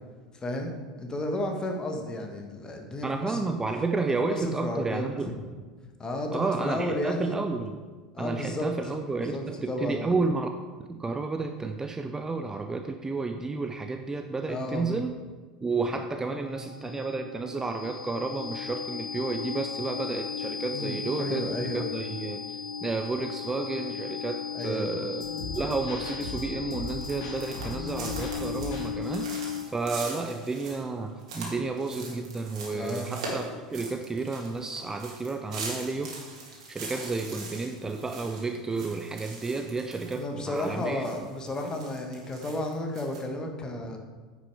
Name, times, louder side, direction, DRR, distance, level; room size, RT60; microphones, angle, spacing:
voice 1, 0.4-3.6 4.2-5.0 6.0-7.4 8.1-10.2 14.5-14.9 20.7-21.9 24.5-24.9 32.7-33.1 40.1-44.0, left 1 dB, 20° left, 3 dB, 1.5 m, -33 dB
voice 2, 3.0-5.3 6.3-7.8 8.2-10.5 10.9-15.2 15.6-25.3 25.6-33.4 33.7-36.4 36.7-41.0, right 3 dB, 15° right, 6 dB, 0.5 m, -31 dB
sound 1, 16.0-29.9, left 6 dB, 90° left, 0.4 m, -36 dB
sound 2, 25.2-29.0, left 2 dB, 55° left, 2.3 m, -38 dB
sound 3, 26.8-40.2 40.5-43.2, right 3 dB, 75° right, 2.5 m, -41 dB
9.7 x 6.1 x 4.8 m, 1.4 s
figure-of-eight pair, 80°, 3 cm